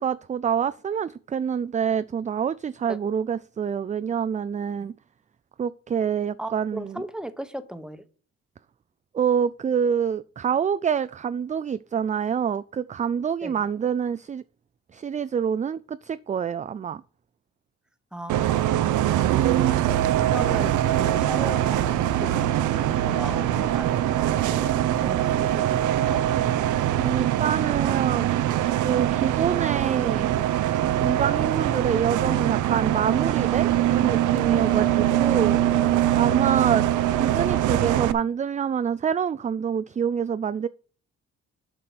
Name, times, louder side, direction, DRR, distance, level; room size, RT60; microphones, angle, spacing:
voice 1, 0.0-4.9 5.6-7.0 9.1-14.4 14.9-17.0 27.0-28.3 28.8-30.3 30.9-35.6 36.1-36.8 37.1-40.7, right 7 dB, 25° right, 0.4 m, -26 dB
voice 2, 6.4-8.0 13.4-13.6 18.1-19.5 20.3-26.2, right 1 dB, 5° right, 1.2 m, -37 dB
Bus, 18.3-38.1, right 12 dB, 80° right, 0.7 m, -23 dB
7.7 x 5.9 x 6.9 m
cardioid pair, 90°, 30 cm